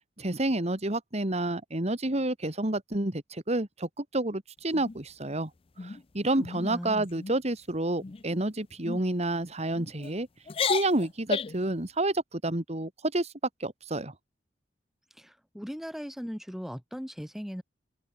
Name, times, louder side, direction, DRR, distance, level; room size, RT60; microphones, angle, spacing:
voice 1, 0.2-5.5 5.8-10.3 10.7-13.3 13.6-14.1, right 1 dB, 40° right, 2.4 m, -29 dB
sound 1, 4.7-5.3 5.8-6.0 6.4-6.7 7.0-7.4 8.0-8.4 8.8-9.0 9.7-10.1 10.5-11.7, left 6 dB, 30° left, 0.5 m, -33 dB
voice 2, 6.6-7.1 15.2-17.6, equal, ahead, 1.5 m, -38 dB
open air
head